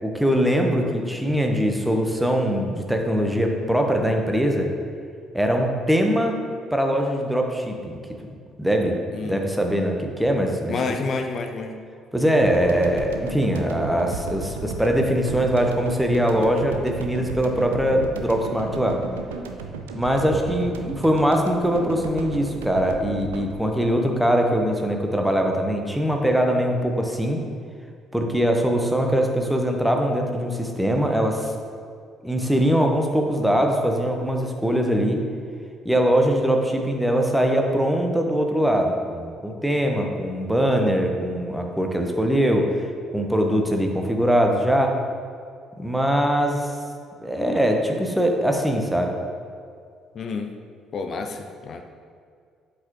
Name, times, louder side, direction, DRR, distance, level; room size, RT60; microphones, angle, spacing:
voice 1, 0.0-4.7 5.3-6.4 6.7-8.0 8.6-9.0 9.2-10.8 12.1-19.0 19.9-27.4 28.1-31.5 32.2-35.2 35.8-42.7 43.1-45.0 45.8-46.7 47.2-49.2, equal, 5° right, 2 dB, 1.0 m, -22 dB
voice 2, 9.1-9.5 10.7-11.7 50.1-50.5 50.9-51.8, left 4 dB, 45° left, 5 dB, 0.5 m, -29 dB
sound 1, 12.4-24.9, right 4 dB, 75° right, 0.4 m, -35 dB
8.0 x 6.7 x 3.0 m, 2.2 s
figure-of-eight pair, 45°, 0 cm